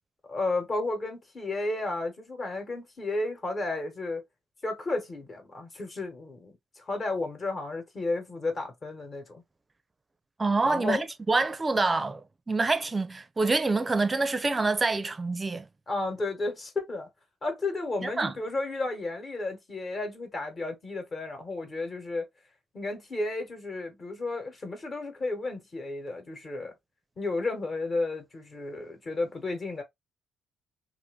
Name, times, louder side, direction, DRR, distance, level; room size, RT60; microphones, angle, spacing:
voice 1, 0.3-4.2 4.6-9.4 10.6-11.0 15.9-17.1 17.4-22.3 22.7-26.7 27.2-29.8, left 2 dB, 40° left, 1.2 m, -32 dB
voice 2, 10.4-15.7 18.0-18.3, right 3 dB, 25° right, 0.5 m, -26 dB
2.6 x 2.5 x 3.2 m
cardioid pair, 90°, 0 cm